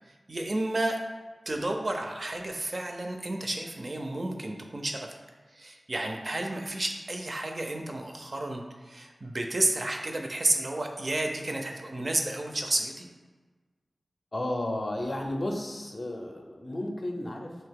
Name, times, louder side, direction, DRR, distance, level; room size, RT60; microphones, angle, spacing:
voice 1, 0.1-1.0 1.5-5.1 5.5-13.1, right 2 dB, 50° right, 3 dB, 0.4 m, -31 dB
voice 2, 14.3-17.6, left 1 dB, 45° left, 2 dB, 0.4 m, -33 dB
2.8 x 2.6 x 3.5 m, 1.3 s
wide cardioid pair, 70°, 0 cm